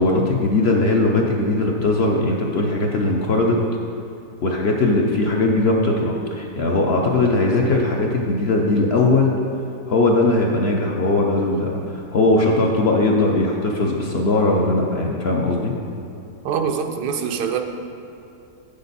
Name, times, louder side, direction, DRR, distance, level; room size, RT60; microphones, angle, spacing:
voice 1, 0.0-3.6 4.4-9.3 9.9-15.7, left 2 dB, 55° left, 0 dB, 0.7 m, -19 dB
voice 2, 16.4-17.6, right 7 dB, 85° right, 5 dB, 1.2 m, -24 dB
8.9 x 6.8 x 4.0 m, 2.7 s
omnidirectional pair, 1.7 m